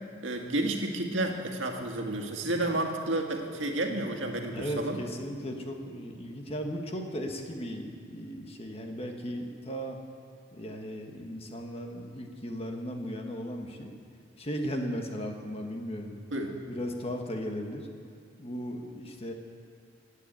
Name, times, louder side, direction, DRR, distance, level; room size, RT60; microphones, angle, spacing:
voice 1, 0.2-5.0 16.3-16.5, right 1 dB, 85° right, 3 dB, 1.8 m, -31 dB
voice 2, 4.5-10.0 10.5-13.9 14.4-16.1 16.7-17.9 18.4-19.3, equal, 30° left, 3 dB, 1.6 m, -36 dB
17.5 x 8.3 x 8.7 m, 2.3 s
head